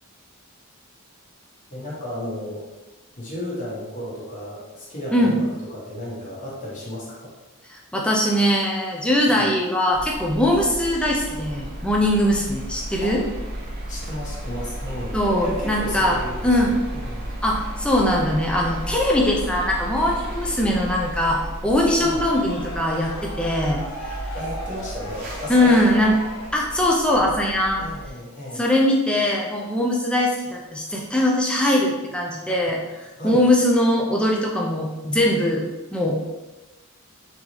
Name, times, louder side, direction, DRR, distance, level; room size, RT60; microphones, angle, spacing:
voice 1, 1.7-2.6 3.2-7.3 9.3-9.5 13.0-13.2 13.9-17.3 22.0-22.2 24.3-25.8 27.7-28.6 33.2-33.4, equal, 35° left, -6 dB, 1.1 m, -33 dB
voice 2, 7.7-13.2 15.1-16.2 16.4-16.8 17.4-23.8 25.5-26.2 26.5-27.8 28.5-36.2, left 1 dB, 5° left, -2 dB, 0.4 m, -21 dB
sound 1, 9.9-28.1, right 1 dB, 40° right, 0.7 m, -34 dB
sound 2, 22.0-27.0, equal, 85° left, 1.4 m, -37 dB
3.7 x 2.9 x 3.0 m, 1.1 s
head